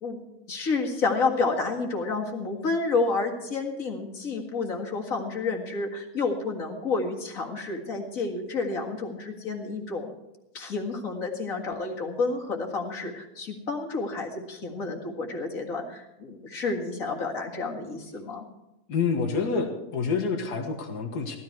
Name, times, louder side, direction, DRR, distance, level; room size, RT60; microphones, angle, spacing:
voice 1, 0.5-10.1 10.5-18.4, left 3 dB, 60° left, 1 dB, 2.3 m, -30 dB
voice 2, 18.9-21.4, left 5 dB, 85° left, 4 dB, 2.0 m, -27 dB
16.0 x 13.0 x 4.6 m, 0.96 s
omnidirectional pair, 1.7 m